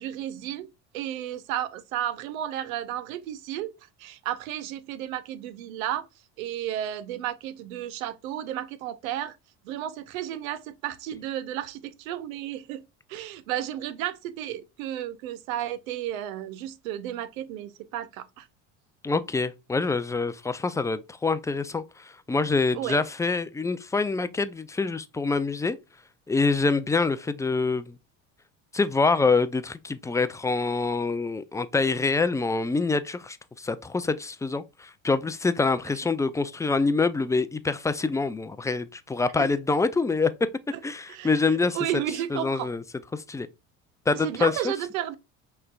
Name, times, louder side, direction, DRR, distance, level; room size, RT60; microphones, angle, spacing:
voice 1, 0.0-3.7 4.0-6.1 6.4-9.4 9.6-12.8 13.1-18.5 22.7-23.0 39.4-39.5 40.7-40.8 41.1-41.4 41.7-42.7 44.2-45.2, right 11 dB, 85° right, 0.7 m, -33 dB
voice 2, 19.0-25.8 26.3-28.0 28.7-40.3 40.8-41.8 42.3-42.8 43.1-43.5 44.1-44.7, left 4 dB, 10° left, 0.4 m, -26 dB
5.7 x 3.3 x 2.3 m
hypercardioid pair, 80°, 40 cm